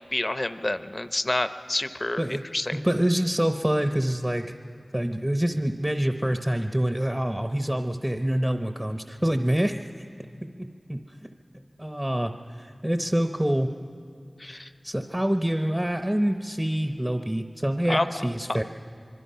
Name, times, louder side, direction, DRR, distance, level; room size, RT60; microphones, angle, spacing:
voice 1, 0.0-2.8 14.4-14.7 17.9-18.1, left 1 dB, 40° left, 12 dB, 0.7 m, -28 dB
voice 2, 2.7-4.5 4.9-9.8 10.4-11.3 11.8-12.3 12.6-13.7 14.5-14.6 14.8-18.6, right 1 dB, 15° right, 6 dB, 0.8 m, -26 dB
25.0 x 23.0 x 5.6 m, 2.3 s
wide cardioid pair, 45°, 0 cm